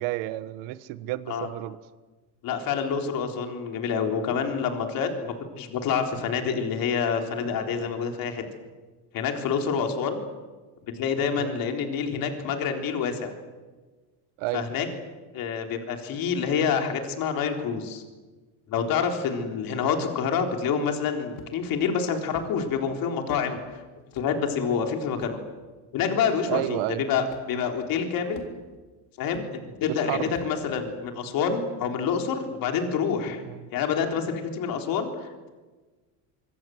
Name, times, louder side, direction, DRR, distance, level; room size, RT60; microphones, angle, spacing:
voice 1, 0.0-1.8 11.4-11.6 14.4-14.7 19.7-19.9 26.5-27.0 29.9-30.3 33.5-33.7, right 16 dB, 65° right, 15 dB, 1.3 m, -31 dB
voice 2, 2.4-8.4 9.1-10.2 10.8-13.3 14.5-14.9 15.3-18.0 18.7-23.6 24.1-25.4 25.9-26.8 27.1-28.4 29.2-33.4 33.7-35.5, left 6 dB, 45° left, 4 dB, 3.9 m, -27 dB
sound 1, 21.3-21.8 22.3-22.5 23.3-23.5 24.1-24.3 25.2-25.4 26.2-26.3 27.3-27.5 28.3-28.8 29.3-29.5 30.3-30.6, left 7 dB, 65° left, 3.8 m, -44 dB
25.0 x 24.5 x 7.8 m, 1.3 s
cardioid pair, 160°, 46 cm